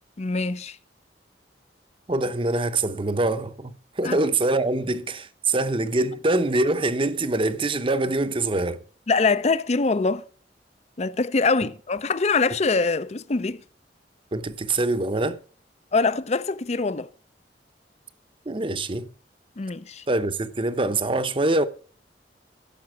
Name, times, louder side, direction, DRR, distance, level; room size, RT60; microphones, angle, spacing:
voice 1, 0.2-0.8 4.0-4.1 9.1-10.2 11.0-13.6 15.9-17.1 19.6-20.0, left 4 dB, 40° left, 0.6 m, -23 dB
voice 2, 2.1-8.8 14.3-15.4 18.5-19.1 20.1-21.6, right 2 dB, 30° right, 0.8 m, -24 dB
15.5 x 6.9 x 6.0 m
head